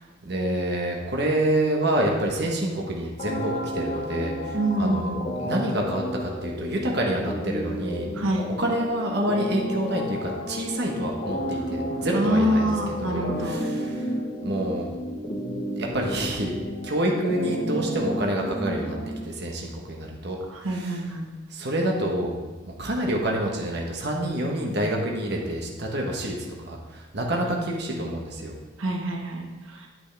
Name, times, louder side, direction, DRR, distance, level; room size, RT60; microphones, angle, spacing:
voice 1, 0.0-5.1 5.4-8.1 8.3-14.1 14.4-14.9 15.7-16.6 16.8-19.0 19.2-21.1 21.5-22.4 22.6-26.4 26.6-28.6, right 1 dB, 55° right, 0 dB, 1.1 m, -27 dB
sound 1, 3.2-19.2, equal, 40° left, 1.2 m, -32 dB
voice 2, 4.5-5.3 8.2-8.5 12.1-13.6 20.5-21.3 28.8-29.9, right 1 dB, 85° right, 1 dB, 1.1 m, -26 dB
8.9 x 8.1 x 3.4 m, 1.2 s
head